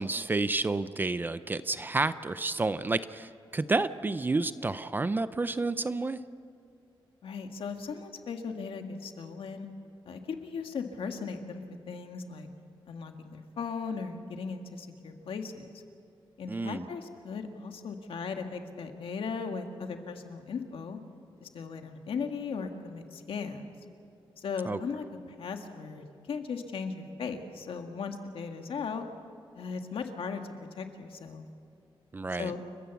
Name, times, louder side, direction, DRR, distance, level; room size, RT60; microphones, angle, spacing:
voice 1, 0.0-6.2 16.5-16.9 24.7-24.8 32.1-32.5, right 3 dB, 20° right, 14 dB, 0.5 m, -30 dB
voice 2, 7.2-9.7 10.1-12.5 12.9-15.7 16.4-21.0 21.4-23.7 24.4-29.1 29.6-30.4 30.8-31.4 32.4-32.6, left 5 dB, 75° left, 5 dB, 1.7 m, -37 dB
30.0 x 15.0 x 7.0 m, 2.5 s
wide cardioid pair, 175°, 9 cm